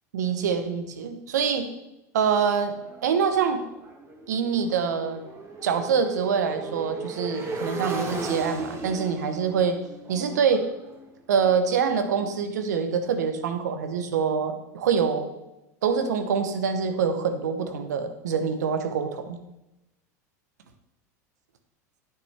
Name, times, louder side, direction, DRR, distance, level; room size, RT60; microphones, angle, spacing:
voice 1, 0.1-1.7 2.1-2.7 3.0-3.6 4.3-5.2 5.6-9.8 10.1-10.6 11.3-15.3 15.8-19.4, right 6 dB, 85° right, 8 dB, 1.0 m, -25 dB
Motorcycle, 2.5-12.3, right 2 dB, 30° right, 1.8 m, -37 dB
9.7 x 8.8 x 3.4 m, 0.95 s
hypercardioid pair, 95°, 9 cm